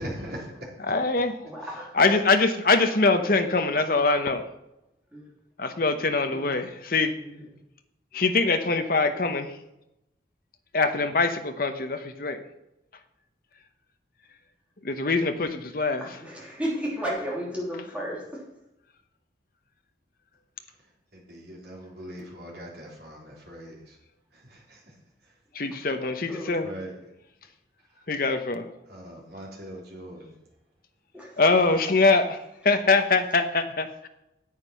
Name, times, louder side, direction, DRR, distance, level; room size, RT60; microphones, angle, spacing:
voice 1, 0.0-0.7 1.6-1.8 21.1-24.0 24.3-25.0 25.2-25.3 26.6-27.0 28.9-30.4, equal, 60° right, -3 dB, 3.6 m, -41 dB
voice 2, 0.9-1.3 1.9-4.4 5.6-7.1 8.1-9.5 10.7-12.4 14.8-16.0 25.6-26.7 28.1-28.6 31.4-32.4 32.6-34.1, left 3 dB, 50° left, 7 dB, 0.9 m, -23 dB
voice 3, 1.4-2.0 5.1-5.2 6.3-6.7 7.2-7.5 16.0-18.4 26.3-26.6 31.1-31.4, equal, 5° right, -4 dB, 3.1 m, -34 dB
9.5 x 8.2 x 5.7 m, 0.87 s
head